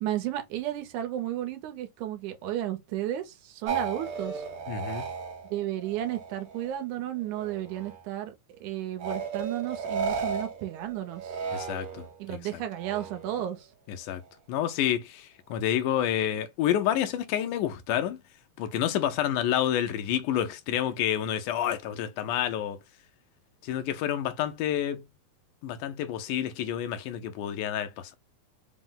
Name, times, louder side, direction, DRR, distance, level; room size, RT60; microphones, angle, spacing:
voice 1, 0.0-4.4 5.5-8.4 8.6-11.4 12.2-13.7, right 12 dB, 80° right, 2.1 m, -33 dB
sound 1, 3.7-6.9 7.2-8.0 9.0-12.2 12.7-13.5, right 5 dB, 60° right, 1.6 m, -35 dB
voice 2, 4.7-5.1 11.5-12.4 13.9-14.2 14.5-18.2 18.6-22.8 23.6-25.0 25.6-28.1, left 10 dB, 90° left, 2.2 m, -29 dB
5.2 x 2.1 x 3.7 m
omnidirectional pair, 3.6 m